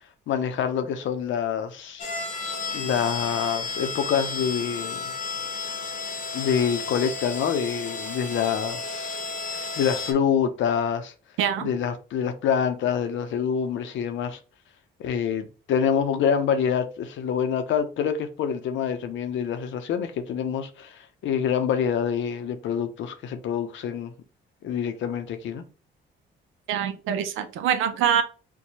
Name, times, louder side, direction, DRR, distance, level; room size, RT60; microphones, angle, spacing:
voice 1, 0.3-2.1 2.7-5.0 6.3-9.2 9.8-11.1 11.6-14.4 15.0-24.1 24.6-25.6, left 7 dB, 75° left, 0.6 m, -26 dB
sound 1, 2.0-10.1, left 4 dB, 40° left, 0.8 m, -33 dB
voice 2, 11.4-11.7 26.7-28.2, right 8 dB, 85° right, 0.5 m, -24 dB
4.4 x 2.3 x 2.8 m
cardioid pair, 90°, 20 cm